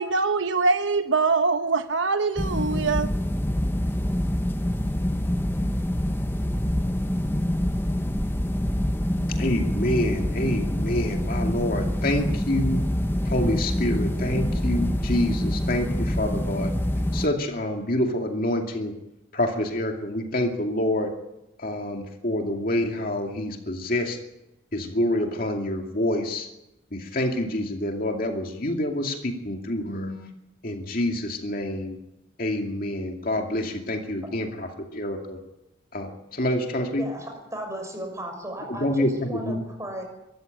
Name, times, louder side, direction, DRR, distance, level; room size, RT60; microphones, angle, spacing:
voice 1, 0.0-3.1, right 4 dB, 70° right, 1.0 m, -23 dB
sound 1, 2.4-17.3, equal, 10° left, 0.9 m, -26 dB
voice 2, 9.4-12.8 13.2-16.7 17.1-18.9 19.3-21.1 21.6-24.2 24.7-26.5 26.9-30.3 30.6-32.0 32.4-35.4 35.9-37.0 38.7-39.6, left 1 dB, 45° left, 2.5 m, -27 dB
voice 3, 37.0-40.0, equal, 15° right, 6.0 m, -35 dB
23.5 x 14.0 x 9.4 m
head